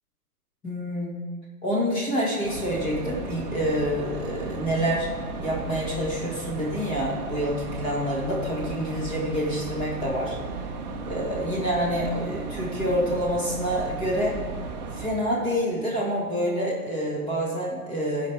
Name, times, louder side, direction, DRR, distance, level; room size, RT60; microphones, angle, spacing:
voice 1, 0.6-1.2 1.6-5.1 5.4-10.4 11.1-14.4 15.0-18.3, equal, 10° left, -5 dB, 1.9 m, -27 dB
sound 1, 2.4-15.1, right 3 dB, 30° right, 0.8 m, -35 dB
14.0 x 5.3 x 4.8 m, 1.4 s
hypercardioid pair, 160°, 44 cm